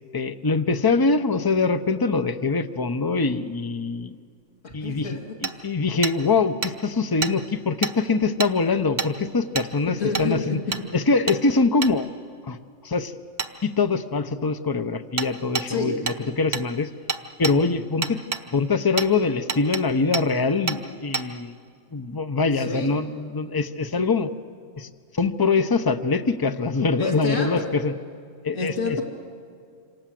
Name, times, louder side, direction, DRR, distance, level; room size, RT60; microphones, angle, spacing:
voice 1, 0.1-4.2 4.7-10.6 10.9-12.1 12.4-12.6 12.8-13.1 13.6-16.9 17.4-18.2 18.5-21.6 21.9-24.3 24.8-24.9 25.1-27.9 28.4-29.0, left 4 dB, 20° left, 11 dB, 0.7 m, -23 dB
voice 2, 4.6-5.4 9.9-10.8 15.7-16.0 22.5-23.0 27.0-27.8 28.5-29.0, left 3 dB, 85° left, 1 dB, 2.8 m, -29 dB
Hammer, 5.4-5.5 6.0-6.2 6.6-6.7 7.2-7.3 7.8-7.9 8.4-8.5 9.0-9.1 9.5-9.7 10.1-10.3 10.7-10.8 11.3-11.4 11.8-11.9 13.4-13.5 15.2-15.3 15.5-15.7 16.1-16.2 16.5-16.7 17.1-17.6 18.0-18.4 19.0-19.1 19.5-19.8 20.1-20.3 20.7-20.8 21.1-21.3, right 5 dB, 40° right, 1.1 m, -27 dB
27.0 x 27.0 x 7.7 m, 2.3 s
omnidirectional pair, 1.3 m